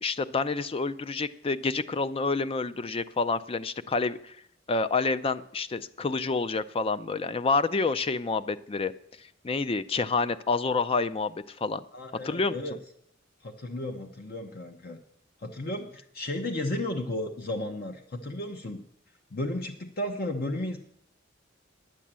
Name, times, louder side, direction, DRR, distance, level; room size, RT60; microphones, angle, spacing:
voice 1, 0.0-4.4 4.7-8.9 9.4-11.8 12.2-12.6, left 4 dB, 30° left, 13 dB, 0.4 m, -28 dB
voice 2, 11.9-12.8 13.4-15.0 15.4-18.8 19.3-20.8, left 1 dB, 55° left, 5 dB, 0.9 m, -34 dB
10.0 x 8.3 x 7.4 m, 0.69 s
head